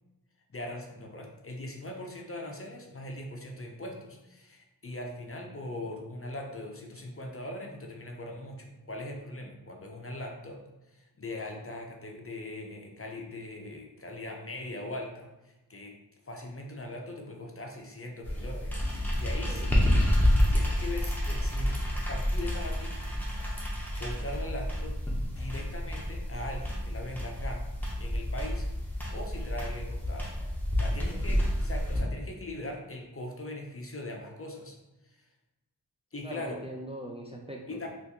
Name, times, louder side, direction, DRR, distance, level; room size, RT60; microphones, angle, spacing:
voice 1, 0.5-10.6 10.9-15.9 16.3-19.8 20.5-23.0 24.0-25.0 25.3-27.7 28.0-28.7 29.1-30.3 30.8-34.8 36.1-36.6 37.7-37.9, left 1 dB, 35° left, 2 dB, 0.5 m, -40 dB
sound 1, 18.2-32.0, equal, 5° left, 0.8 m, -29 dB
voice 2, 31.1-31.5 36.2-37.9, right 1 dB, 15° right, -1 dB, 0.4 m, -42 dB
3.4 x 2.5 x 2.8 m, 1.0 s
wide cardioid pair, 55°, 39 cm